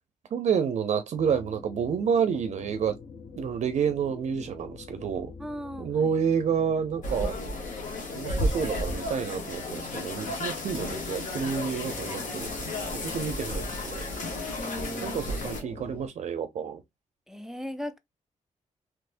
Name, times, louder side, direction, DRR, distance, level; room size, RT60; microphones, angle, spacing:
voice 1, 0.3-2.9 3.4-5.3 5.8-7.3 8.1-14.1 15.0-16.8, right 7 dB, 65° right, 0.4 m, -29 dB
sound 1, 1.1-16.1, left 5 dB, 45° left, 0.5 m, -45 dB
voice 2, 5.4-6.1 13.2-13.4 14.6-15.4 17.3-18.0, equal, 5° right, 0.5 m, -38 dB
sound 2, 7.0-15.6, left 1 dB, 90° left, 1.1 m, -33 dB
3.4 x 3.0 x 2.5 m
cardioid pair, 110°, 13 cm